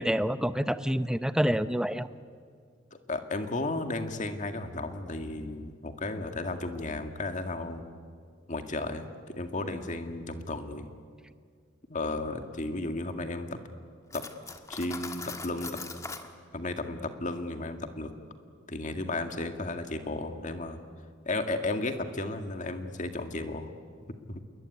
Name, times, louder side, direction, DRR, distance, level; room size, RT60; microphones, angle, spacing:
voice 1, 0.0-2.1, equal, 5° right, 12 dB, 0.7 m, -27 dB
voice 2, 2.9-7.9 8.5-10.9 11.9-13.6 14.1-14.2 14.7-15.8 16.5-18.1 18.7-20.8 21.2-23.7 24.3-24.4, left 2 dB, 40° left, 6 dB, 2.0 m, -34 dB
Cutlery silverware, 14.1-16.3, left 3 dB, 15° left, 1.5 m, -40 dB
28.0 x 22.0 x 9.6 m, 2.1 s
head